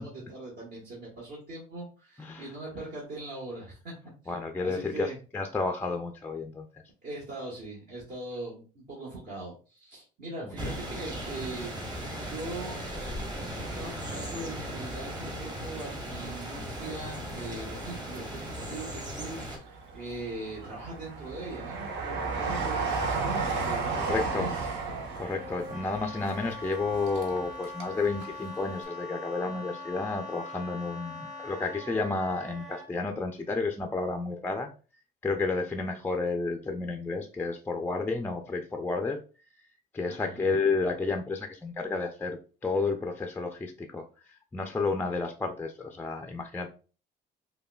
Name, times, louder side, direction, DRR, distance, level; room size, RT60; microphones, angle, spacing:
voice 1, 0.0-3.9 4.6-5.2 7.0-11.7 12.2-12.8 13.5-24.5 40.1-40.5, right 2 dB, 60° right, -5 dB, 1.3 m, -41 dB
voice 2, 2.2-2.5 4.3-6.8 10.5-10.6 23.9-24.7 25.1-34.7 35.2-39.2 39.9-46.7, left 3 dB, 10° left, 4 dB, 0.3 m, -31 dB
sound 1, 10.6-19.6, equal, 20° right, 1.0 m, -37 dB
Train, 16.0-17.2 17.7-18.7 19.2-27.9 28.2-28.3, right 4 dB, 80° right, 0.9 m, -34 dB
Wind instrument woodwind instrument, 25.3-32.9, left 2 dB, 40° right, 1.4 m, -42 dB
5.3 x 2.1 x 2.2 m, 0.36 s
cardioid pair, 100°, 19 cm